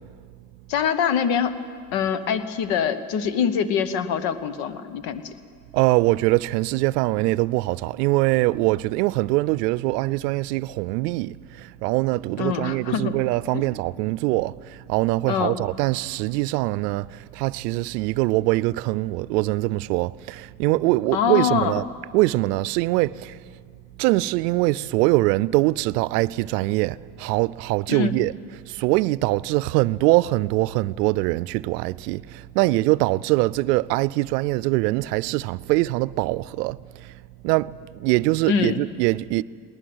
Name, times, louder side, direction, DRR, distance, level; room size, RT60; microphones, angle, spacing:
voice 1, 0.7-1.6 1.9-5.3 12.4-13.1 13.5-13.6 15.3-15.5 21.1-21.7 27.9-28.2 38.5-38.8, left 7 dB, 70° left, 1.4 m, -24 dB
voice 2, 5.7-21.8 22.1-23.5 24.0-28.3 28.6-39.4, right 20 dB, 85° right, 0.6 m, -23 dB
19.5 x 19.5 x 8.0 m
hypercardioid pair, 75°, 47 cm